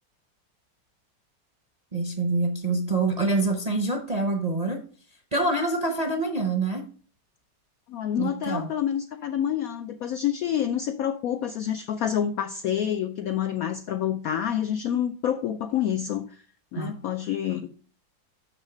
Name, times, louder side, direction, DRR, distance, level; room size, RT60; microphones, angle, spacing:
voice 1, 1.9-4.8 5.3-6.8 8.2-8.7 16.8-16.9, right 2 dB, 35° right, 4 dB, 0.6 m, -26 dB
voice 2, 7.9-16.4 16.7-17.7, left 10 dB, 75° left, 8 dB, 0.8 m, -28 dB
6.5 x 6.2 x 5.0 m, 0.42 s
omnidirectional pair, 2.0 m